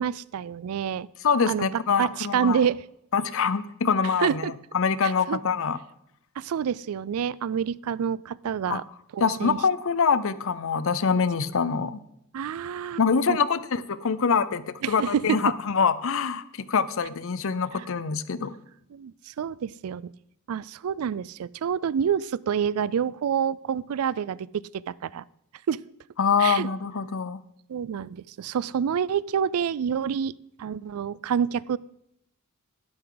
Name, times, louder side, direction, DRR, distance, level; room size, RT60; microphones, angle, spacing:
voice 1, 0.0-1.1 1.5-2.8 4.0-4.5 5.0-5.4 6.4-8.8 9.1-9.6 12.3-13.0 13.3-13.4 14.8-15.4 17.8-17.9 18.9-20.1 20.5-25.2 25.7-25.8 26.4-26.7 27.7-31.8, right 8 dB, 85° right, 22 dB, 0.4 m, -28 dB
voice 2, 1.2-2.6 3.1-4.4 4.7-5.8 8.7-8.8 9.2-12.0 13.0-18.6 26.2-27.4, left 5 dB, 65° left, 16 dB, 0.6 m, -24 dB
12.5 x 11.5 x 3.9 m, 0.78 s
head